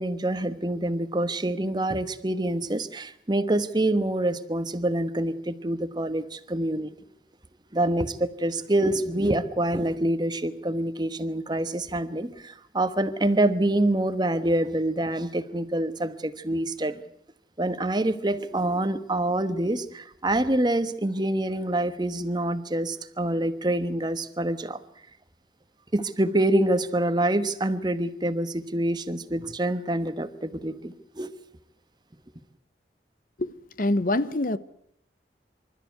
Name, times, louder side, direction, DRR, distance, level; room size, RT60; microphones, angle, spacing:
voice 1, 0.0-6.9 7.7-17.0 17.6-24.8 25.9-31.3, right 1 dB, 25° right, 1.2 m, -26 dB
voice 2, 33.4-34.6, left 1 dB, 50° left, 0.8 m, -25 dB
25.5 x 13.5 x 9.4 m
head